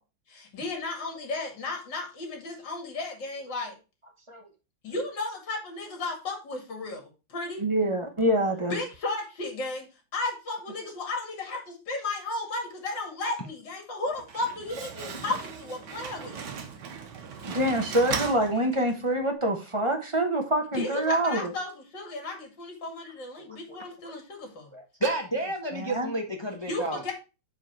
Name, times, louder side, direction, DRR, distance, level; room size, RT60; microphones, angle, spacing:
voice 1, 0.3-3.7 4.8-7.6 8.7-9.9 10.1-16.4 20.7-24.7 26.7-27.1, left 2 dB, 60° left, 2 dB, 2.9 m, -34 dB
voice 2, 7.6-8.7 17.4-21.5 23.7-23.8 24.7-24.8 25.7-26.1, right 1 dB, 25° right, 4 dB, 0.6 m, -26 dB
Slam, 14.1-19.2, right 6 dB, 60° right, 1.6 m, -37 dB
voice 3, 25.0-27.0, right 2 dB, 20° left, 2 dB, 0.9 m, -30 dB
7.5 x 5.0 x 4.6 m, 0.30 s
omnidirectional pair, 2.2 m